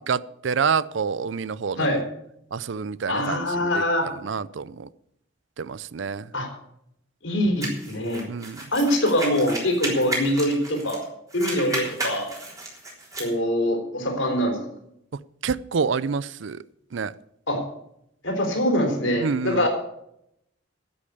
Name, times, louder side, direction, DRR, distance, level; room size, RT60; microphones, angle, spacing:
voice 1, 0.1-2.0 2.5-3.8 4.2-4.9 5.6-6.3 8.3-8.6 15.4-16.6 16.9-17.1 19.2-19.7, right 5 dB, 65° right, 0.5 m, -27 dB
voice 2, 3.1-4.1 6.3-6.5 7.2-8.3 8.7-11.0 11.3-12.3 13.2-14.6 17.5-17.6 18.2-19.7, left 1 dB, 75° left, 3.8 m, -23 dB
sound 1, 7.6-11.0 11.3-13.3, right 2 dB, 15° right, 3.6 m, -33 dB
10.5 x 8.5 x 8.5 m
head